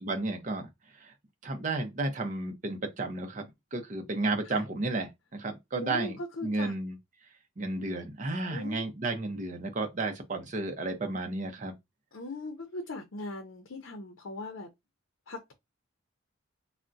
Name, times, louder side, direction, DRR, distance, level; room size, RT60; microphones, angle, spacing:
voice 1, 0.0-0.7 1.0-1.1 1.4-7.0 7.6-11.7, right 2 dB, 40° right, 0.6 m, -33 dB
voice 2, 5.8-6.7 8.5-8.8 12.1-14.7 15.3-15.5, left 2 dB, 75° left, 0.6 m, -39 dB
3.5 x 2.1 x 2.6 m
head